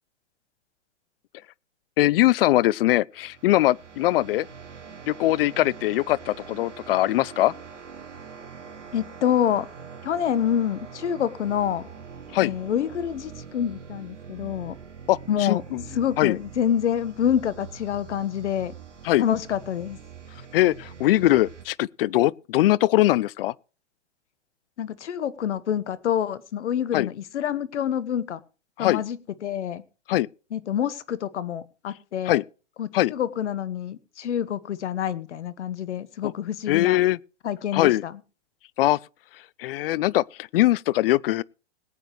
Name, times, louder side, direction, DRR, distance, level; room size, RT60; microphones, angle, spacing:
voice 1, 2.0-4.5 5.1-7.5 12.3-12.5 15.1-15.8 16.2-16.4 19.0-19.2 20.5-23.5 26.9-27.1 28.8-29.0 30.1-30.3 32.3-32.4 32.9-33.1 36.2-36.3 36.7-37.2 37.7-38.0 38.8-39.0 39.6-40.2 40.5-41.4, left 16 dB, 55° left, 0.5 m, -21 dB
sound 1, 3.1-21.7, right 6 dB, 85° right, 2.0 m, -43 dB
voice 2, 8.9-9.7 10.0-11.9 12.4-14.7 15.3-15.6 15.9-18.7 19.2-20.0 24.8-28.4 28.8-29.8 30.5-32.4 32.8-37.0 37.4-38.1, left 9 dB, 70° left, 1.3 m, -27 dB
21.0 x 9.0 x 3.1 m
hypercardioid pair, 115°, 36 cm